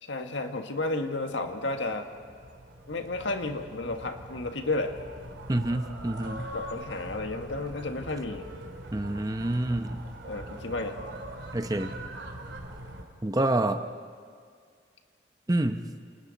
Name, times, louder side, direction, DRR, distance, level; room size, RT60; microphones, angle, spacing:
voice 1, 0.0-2.1 2.9-5.0 6.5-8.5 10.2-11.0, left 2 dB, 75° left, 5 dB, 1.6 m, -32 dB
sound 1, 1.0-13.0, right 1 dB, 70° right, 2.9 m, -43 dB
voice 2, 5.5-6.5 8.9-10.0 11.5-11.9 13.2-13.8 15.5-15.8, right 1 dB, 20° right, 8 dB, 0.8 m, -27 dB
29.5 x 27.5 x 4.1 m, 2.1 s
head